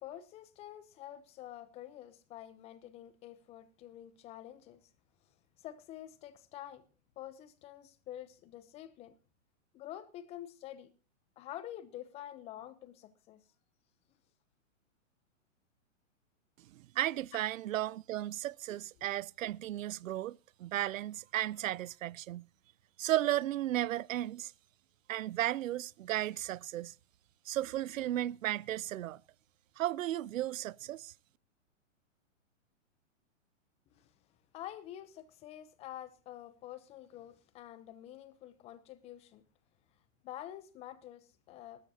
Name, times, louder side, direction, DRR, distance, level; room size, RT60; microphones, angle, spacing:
voice 1, 0.0-4.8 5.6-6.8 7.2-9.1 9.7-10.9 11.4-13.4 18.7-19.1 34.0-34.1 34.5-39.4 40.2-41.9, left 12 dB, 15° left, 0.6 m, -48 dB
voice 2, 16.7-22.5 23.0-24.5 25.1-26.9 27.5-29.2 29.8-31.1, right 13 dB, 80° right, 0.5 m, -34 dB
19.0 x 13.0 x 2.7 m
hypercardioid pair, 145°, 39 cm